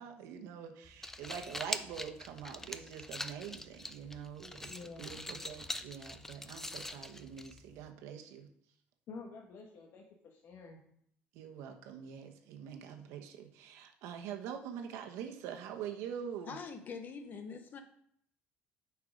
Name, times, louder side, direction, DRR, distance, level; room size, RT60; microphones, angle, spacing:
voice 1, 0.0-8.5 11.3-16.5, right 8 dB, 80° right, 5 dB, 1.0 m, -45 dB
sound 1, 0.8-7.9, left 1 dB, 10° left, 0.4 m, -44 dB
voice 2, 4.7-5.2 9.1-10.8, left 4 dB, 55° left, 0 dB, 1.2 m, -49 dB
voice 3, 16.5-17.8, left 5 dB, 40° left, 7 dB, 0.7 m, -44 dB
8.4 x 4.7 x 5.2 m, 0.68 s
cardioid pair, 135°, 5 cm